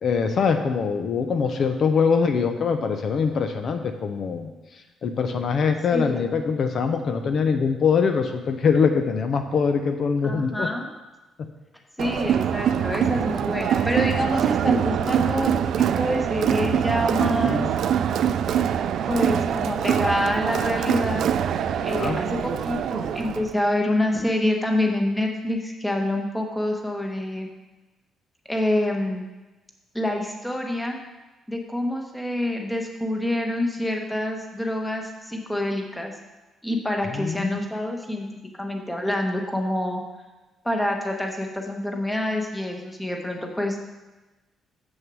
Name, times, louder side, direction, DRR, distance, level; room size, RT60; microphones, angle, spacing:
voice 1, 0.0-4.5 5.0-10.7 11.4-11.5 17.4-17.7 21.9-22.2 37.1-37.6, left 5 dB, 50° left, 6 dB, 0.7 m, -23 dB
voice 2, 10.2-10.9 12.0-17.6 19.0-21.3 21.8-27.5 28.5-29.2 29.9-31.0 31.5-36.1 36.6-38.3 38.6-40.0 40.6-43.8, left 1 dB, 5° left, 2 dB, 1.1 m, -27 dB
Crowd, 12.0-23.5, right 9 dB, 65° right, 0.4 m, -24 dB
7.3 x 6.4 x 6.2 m, 1.1 s
cardioid pair, 145°, 0 cm